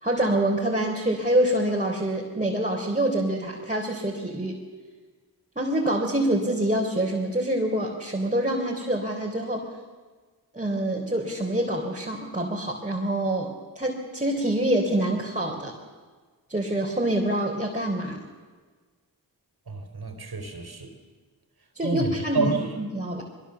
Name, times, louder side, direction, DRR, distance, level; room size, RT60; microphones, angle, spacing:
voice 1, 0.0-4.6 5.6-9.7 10.5-15.8 16.5-18.2 21.7-22.5 22.8-23.2, right 1 dB, 15° right, -2 dB, 3.9 m, -26 dB
voice 2, 19.7-20.9 21.8-22.8, right 4 dB, 55° right, 6 dB, 3.9 m, -29 dB
22.0 x 21.0 x 7.1 m, 1.4 s
cardioid pair, 40°, 44 cm